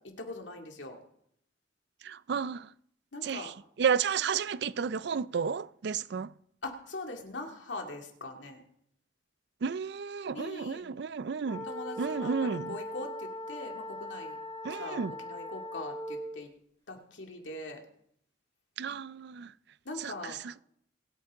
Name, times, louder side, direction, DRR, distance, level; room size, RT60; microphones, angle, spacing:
voice 1, 0.2-1.0 3.1-3.5 6.6-8.6 10.3-10.9 11.7-14.4 14.7-16.5 16.9-17.8 19.8-20.4, left 2 dB, 85° left, 2.4 m, -42 dB
voice 2, 2.0-2.7 3.2-3.5 3.8-6.3 9.6-11.7 12.0-12.8 14.6-15.1 18.8-19.5 20.0-20.6, right 6 dB, 65° right, 0.4 m, -32 dB
sound 1, 11.4-16.4, left 1 dB, 25° left, 5.5 m, -40 dB
26.0 x 9.1 x 3.7 m
head